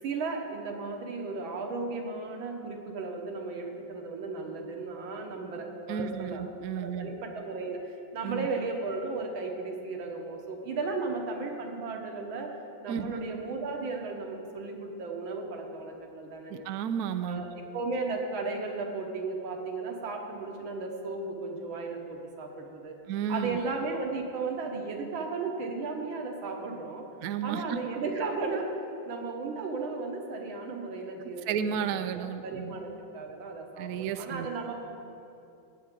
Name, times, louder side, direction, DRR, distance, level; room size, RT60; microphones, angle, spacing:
voice 1, 0.0-6.5 6.8-16.7 17.2-23.0 23.3-27.1 27.4-28.7 29.1-31.5 31.9-32.9 33.1-34.8, right 3 dB, 75° right, 2 dB, 1.9 m, -35 dB
voice 2, 5.9-7.1 8.2-8.5 12.9-13.1 16.5-17.4 23.1-23.6 27.2-27.8 31.5-32.7 33.8-34.6, right 8 dB, 90° right, 10 dB, 0.8 m, -32 dB
17.0 x 8.6 x 3.7 m, 2.7 s
omnidirectional pair, 2.2 m